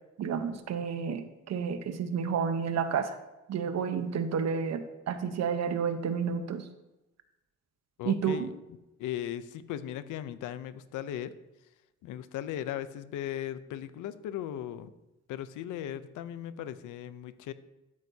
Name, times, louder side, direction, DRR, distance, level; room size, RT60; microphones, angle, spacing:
voice 1, 0.2-3.2 3.5-6.6 8.0-8.5, right 6 dB, 60° right, 9 dB, 1.0 m, -30 dB
voice 2, 8.0-8.5 9.0-11.3 12.0-14.9 15.3-17.5, left 11 dB, 85° left, 13 dB, 0.7 m, -37 dB
12.0 x 9.7 x 2.8 m, 0.99 s
cardioid pair, 90°, 30 cm